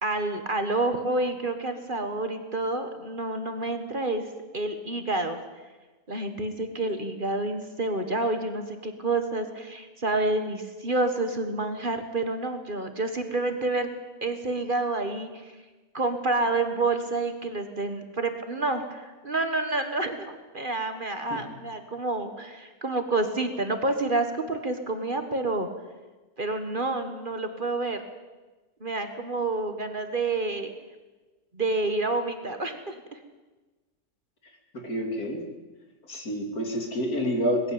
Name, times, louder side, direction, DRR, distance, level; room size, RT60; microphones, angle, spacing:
voice 1, 0.0-4.2 4.5-5.4 6.1-13.9 14.2-15.5 15.9-25.7 26.4-28.0 28.8-30.7 31.5-33.2, right 2 dB, 35° right, 7 dB, 1.7 m, -28 dB
voice 2, 34.7-35.4 36.1-37.7, equal, 75° left, 2 dB, 3.6 m, -28 dB
20.5 x 16.0 x 8.9 m, 1.2 s
omnidirectional pair, 1.6 m